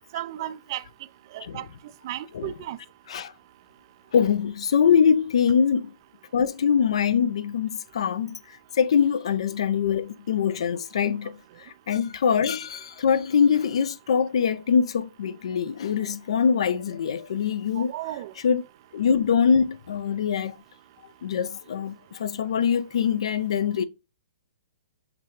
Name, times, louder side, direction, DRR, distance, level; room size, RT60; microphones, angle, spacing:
voice 1, 0.1-0.8 1.3-1.7 2.0-2.8 17.8-18.3, right 14 dB, 45° right, 0.3 m, -34 dB
voice 2, 2.3-2.6 3.1-3.3 4.1-5.9 6.3-8.4 8.7-11.4 11.9-17.9 18.4-18.7 18.9-20.5 21.2-23.8, left 7 dB, 70° left, 0.4 m, -23 dB
5.9 x 2.7 x 3.2 m
hypercardioid pair, 140°, 3 cm